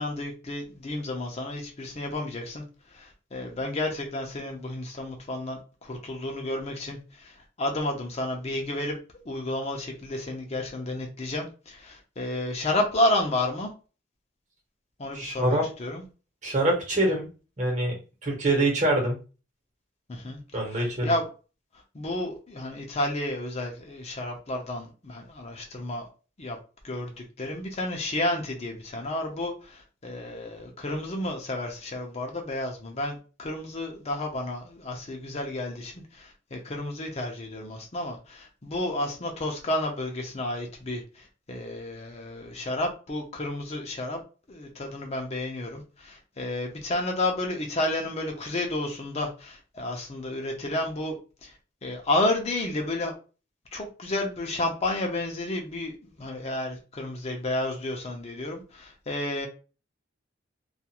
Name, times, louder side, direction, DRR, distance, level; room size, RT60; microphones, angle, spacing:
voice 1, 0.0-2.6 2.9-9.0 9.3-13.7 15.0-16.0 20.1-20.4 20.7-21.3 21.9-26.1 26.4-26.6 26.8-44.2 44.5-51.2 51.4-51.6 51.8-53.1 53.7-59.5, left 1 dB, 35° left, 2 dB, 0.6 m, -31 dB
voice 2, 15.1-15.7 16.4-17.3 17.6-17.9 18.2-19.2 20.5-21.1, right 1 dB, 40° right, 0 dB, 1.0 m, -24 dB
2.4 x 2.4 x 2.8 m, 0.34 s
head